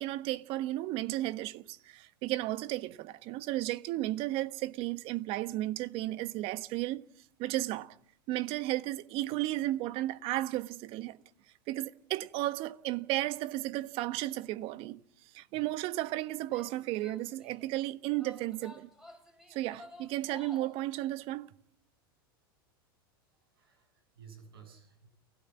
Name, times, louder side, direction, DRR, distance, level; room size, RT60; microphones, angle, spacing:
voice 1, 0.0-7.0 7.4-8.0 8.3-11.2 11.7-15.0 15.3-18.9 19.5-21.5, right 16 dB, 50° right, 1.2 m, -34 dB
Female speech woman speaking / Yell, 16.4-17.7 18.2-20.8, left 1 dB, 5° right, 7.0 m, -52 dB
voice 2, 23.3-25.1, right 7 dB, 85° right, 7.4 m, -55 dB
29.5 x 16.0 x 8.5 m
hypercardioid pair, 100°, 12 cm